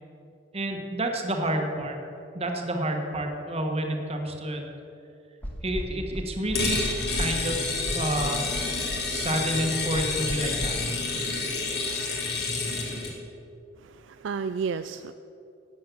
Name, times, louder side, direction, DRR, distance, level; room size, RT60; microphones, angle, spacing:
voice 1, 0.5-2.0 2.3-4.6 5.6-8.4 9.1-10.8, right 1 dB, 35° right, 3 dB, 1.4 m, -29 dB
sound 1, 5.4-10.7, equal, 10° left, 1.6 m, -35 dB
sound 2, 6.5-13.1, left 3 dB, 60° left, 2.3 m, -29 dB
voice 2, 13.8-15.1, right 5 dB, 70° right, 11 dB, 0.4 m, -32 dB
12.0 x 8.7 x 7.1 m, 2.7 s
head